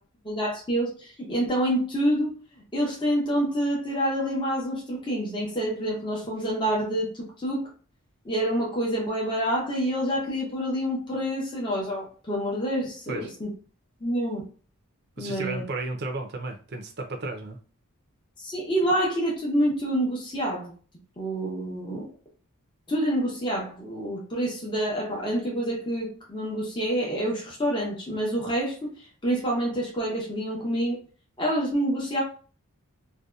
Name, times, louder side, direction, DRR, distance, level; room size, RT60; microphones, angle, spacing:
voice 1, 0.2-2.3 2.7-7.7 8.2-13.5 14.0-14.4 15.2-15.6 18.4-20.7 21.2-22.1 22.9-28.7 29.2-31.0 31.4-32.2, equal, 20° left, -4 dB, 0.7 m, -27 dB
voice 2, 15.2-17.6, right 2 dB, 45° right, 4 dB, 0.5 m, -33 dB
2.7 x 2.2 x 2.3 m, 0.39 s
head